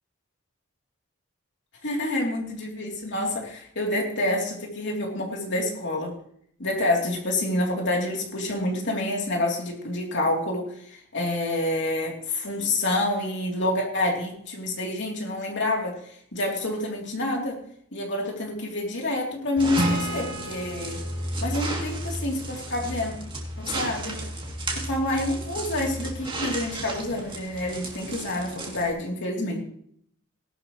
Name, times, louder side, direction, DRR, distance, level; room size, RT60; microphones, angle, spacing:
voice 1, 1.8-6.1 6.6-16.0 16.3-17.6 17.9-21.0 21.4-23.1 23.6-24.2 24.7-29.6, left 1 dB, 60° left, 0 dB, 3.1 m, -28 dB
sound 1, 19.6-28.9, right 1 dB, 25° right, 2.7 m, -33 dB
Acoustic guitar / Strum, 19.8-23.2, right 1 dB, 45° right, 1.4 m, -33 dB
18.5 x 11.5 x 3.1 m, 0.66 s
head